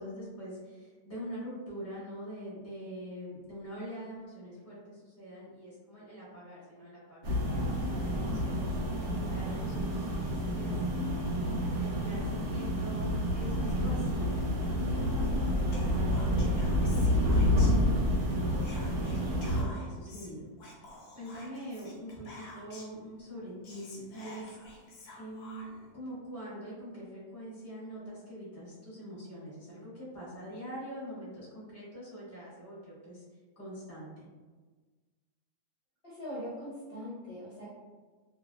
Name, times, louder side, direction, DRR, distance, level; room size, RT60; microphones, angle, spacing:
voice 1, 0.0-11.1 11.6-13.1 13.3-20.5 20.7-33.2 33.5-34.3, equal, 10° left, -9 dB, 1.0 m, -44 dB
sound 1, 7.2-19.6, equal, 70° right, 1.1 m, -29 dB
voice 2, 7.8-8.6 36.0-37.7, equal, 45° left, -11 dB, 0.9 m, -42 dB
Whispering, 15.7-18.2 18.6-23.0 23.4-23.5 23.6-25.9, left 2 dB, 80° left, 0.5 m, -50 dB
2.9 x 2.6 x 2.2 m, 1.4 s
omnidirectional pair, 1.7 m